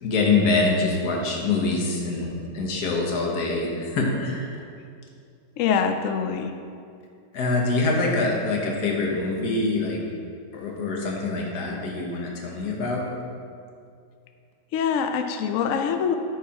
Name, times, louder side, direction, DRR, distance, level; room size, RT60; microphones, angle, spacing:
voice 1, 0.0-2.3 2.5-3.7 3.9-4.5 7.3-10.0 10.5-13.0, left 3 dB, 65° left, -1 dB, 1.6 m, -24 dB
voice 2, 5.6-6.5 14.7-16.2, left 7 dB, 85° left, 7 dB, 0.7 m, -24 dB
9.3 x 4.9 x 4.2 m, 2.3 s
omnidirectional pair, 2.0 m